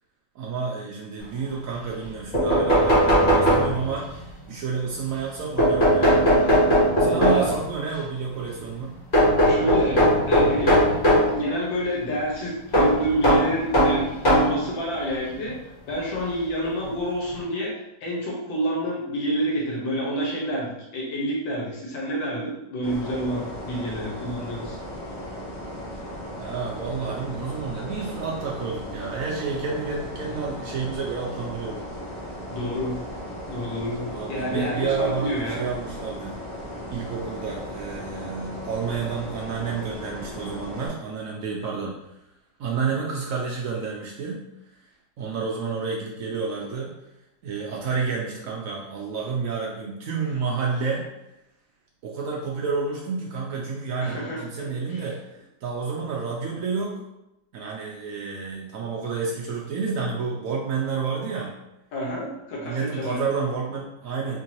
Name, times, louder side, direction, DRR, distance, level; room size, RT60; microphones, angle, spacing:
voice 1, 0.3-4.2 4.5-6.3 7.0-8.9 26.4-31.8 34.1-36.4 36.9-41.9 42.6-44.4 45.2-46.9 47.4-51.1 52.0-57.0 57.5-61.5 62.6-64.4, right 5 dB, 80° right, -2 dB, 0.7 m, -30 dB
sound 1, 2.0-2.1 2.3-4.1 5.6-7.6 9.1-11.3 12.7-14.6 15.5-15.6 16.9-17.0 17.3-17.4, equal, 30° left, 1.3 m, -19 dB
voice 2, 7.0-7.5 9.4-10.9 11.3-15.6 15.9-24.8 32.5-33.0 33.5-35.6 38.1-38.2 54.0-55.0 61.9-63.2, equal, 80° left, -5 dB, 1.8 m, -28 dB
sound 2, 22.8-40.9, equal, 50° left, 2.0 m, -36 dB
4.5 x 2.7 x 2.9 m, 0.89 s
omnidirectional pair, 2.0 m